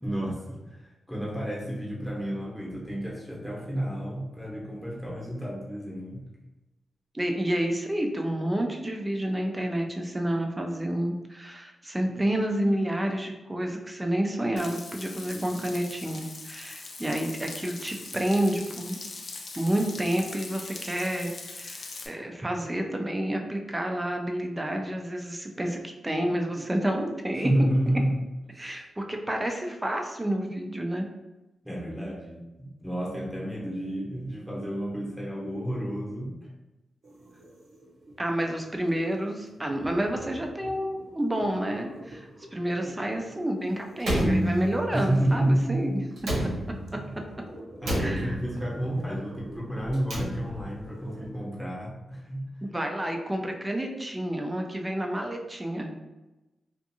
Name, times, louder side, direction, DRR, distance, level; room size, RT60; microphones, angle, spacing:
voice 1, 0.0-6.2 27.4-28.1 28.5-28.7 31.6-36.5 44.9-45.8 46.3-46.5 47.8-52.5, right 1 dB, ahead, -5 dB, 1.0 m, -30 dB
voice 2, 7.1-19.0 19.6-27.5 28.6-31.1 38.2-46.0 48.0-48.4 52.6-55.9, right 1 dB, 15° right, 2 dB, 0.5 m, -29 dB
Frying (food), 14.6-22.1, left 3 dB, 55° left, 0.4 m, -41 dB
sound 1, 37.0-51.3, right 1 dB, 60° right, 0.6 m, -48 dB
Slam, 44.0-45.1 46.2-47.1 47.8-48.7 49.8-50.8, equal, 80° right, 0.9 m, -29 dB
2.5 x 2.5 x 2.7 m, 1.0 s
cardioid pair, 70°, 0 cm